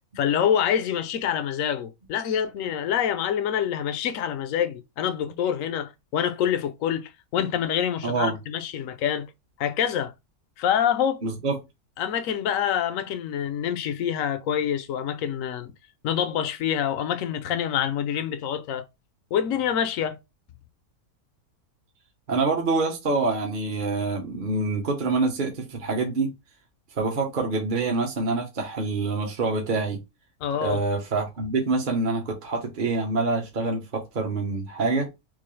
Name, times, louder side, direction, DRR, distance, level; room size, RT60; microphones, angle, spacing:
voice 1, 0.2-9.3 9.6-10.1 10.6-11.2 12.0-15.7 16.0-18.9 19.3-20.2 30.4-30.8, left 9 dB, 70° left, 0.9 m, -26 dB
voice 2, 8.0-8.4 11.2-11.6 22.3-26.3 27.0-30.0 30.6-35.1, right 3 dB, 40° right, 0.8 m, -26 dB
3.7 x 2.7 x 3.1 m
omnidirectional pair, 1.6 m